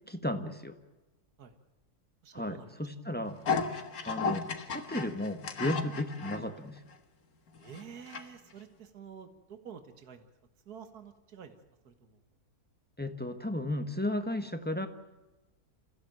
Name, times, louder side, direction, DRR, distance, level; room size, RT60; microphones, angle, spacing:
voice 1, 0.1-0.8 2.3-3.5 4.0-6.8 13.0-14.9, left 1 dB, 5° left, 7 dB, 1.4 m, -34 dB
voice 2, 2.2-2.7 7.6-10.3 10.7-11.6 11.8-12.2, right 7 dB, 75° right, 7 dB, 2.1 m, -49 dB
sound 1, 3.5-6.4 6.9-7.0 7.6-8.2 8.5-8.6, left 5 dB, 70° left, 2.1 m, -34 dB
28.0 x 15.5 x 9.1 m, 1.1 s
omnidirectional pair, 1.6 m